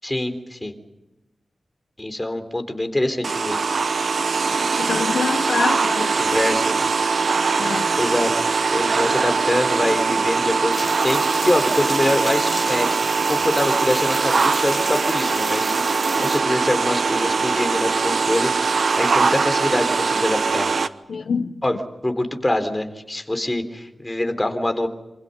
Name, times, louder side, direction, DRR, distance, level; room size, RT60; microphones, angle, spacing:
voice 1, 0.0-0.7 2.0-3.6 6.2-6.9 8.0-8.3 8.7-10.7 11.0-12.9 13.3-15.8 16.2-20.7 21.6-21.8 22.0-24.9, left 1 dB, 15° left, 3.7 m, -24 dB
sound 1, 3.2-20.9, right 4 dB, 70° right, 1.1 m, -21 dB
voice 2, 4.8-6.2 7.6-8.0 21.1-21.6, left 5 dB, 85° left, 1.0 m, -26 dB
sound 2, 10.7-16.4, equal, 5° right, 3.8 m, -33 dB
27.0 x 26.5 x 5.5 m
wide cardioid pair, 90°, 0 cm